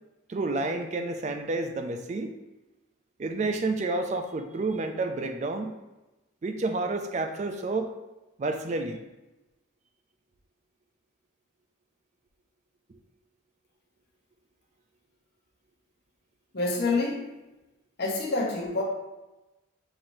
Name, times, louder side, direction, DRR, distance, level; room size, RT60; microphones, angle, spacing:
voice 1, 0.3-2.3 3.2-5.7 6.4-7.9 8.4-9.0, right 2 dB, 35° right, 6 dB, 0.3 m, -30 dB
voice 2, 16.5-17.3 18.0-18.8, left 3 dB, 50° left, -2 dB, 0.8 m, -27 dB
5.7 x 3.0 x 2.6 m, 1.0 s
head